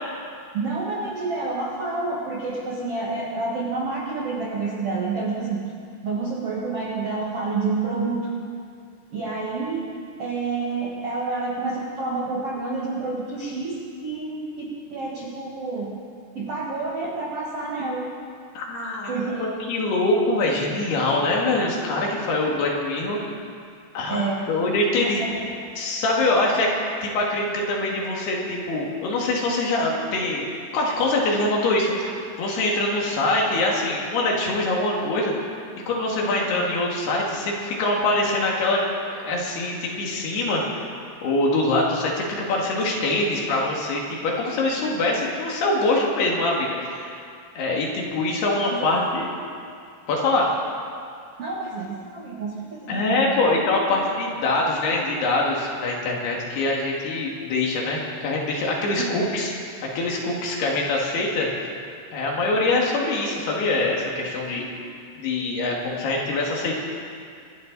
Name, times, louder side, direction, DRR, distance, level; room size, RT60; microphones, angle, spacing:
voice 1, 0.5-5.6 6.0-8.3 9.1-9.8 10.2-15.9 16.3-18.1 19.1-19.4 24.1-24.4 25.2-25.6 44.8-45.0 48.6-48.8 51.4-53.5 58.9-59.3, right 3 dB, 80° right, -3 dB, 1.3 m, -29 dB
voice 2, 18.6-23.2 23.9-25.2 25.8-26.7 27.0-30.5 30.7-35.3 35.9-40.8 41.2-47.2 47.6-49.3 50.1-50.5 52.9-59.5 59.8-61.7 62.1-64.7 65.2-66.7, left 2 dB, 65° left, -2 dB, 3.8 m, -24 dB
25.5 x 12.5 x 4.0 m, 2.3 s
omnidirectional pair, 5.4 m